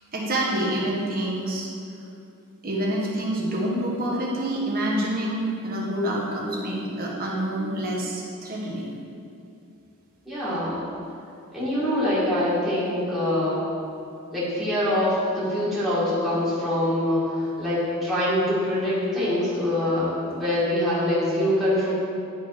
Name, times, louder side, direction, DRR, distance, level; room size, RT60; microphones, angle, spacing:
voice 1, 0.1-1.7 2.6-8.9, right 1 dB, 45° right, -3 dB, 1.4 m, -27 dB
voice 2, 10.3-10.8 11.5-13.6 14.3-21.9, left 1 dB, ahead, -12 dB, 1.9 m, -24 dB
10.0 x 4.0 x 4.8 m, 2.5 s
head